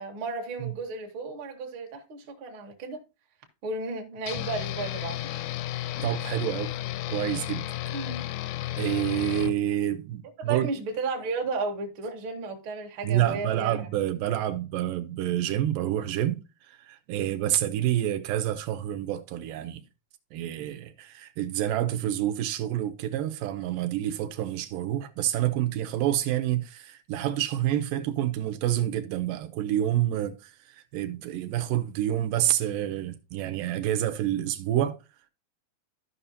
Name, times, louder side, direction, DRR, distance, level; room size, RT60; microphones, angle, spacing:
voice 1, 0.0-3.0 3.6-5.6 7.9-8.4 10.4-13.9 17.2-17.4, right 3 dB, 55° right, 1.5 m, -34 dB
sound 1, 4.3-9.5, left 14 dB, 80° left, 1.8 m, -33 dB
voice 2, 6.0-6.7 7.1-8.0 8.8-10.7 13.0-19.8 20.3-35.0, right 12 dB, 85° right, 2.3 m, -28 dB
13.5 x 5.5 x 2.8 m
omnidirectional pair, 3.9 m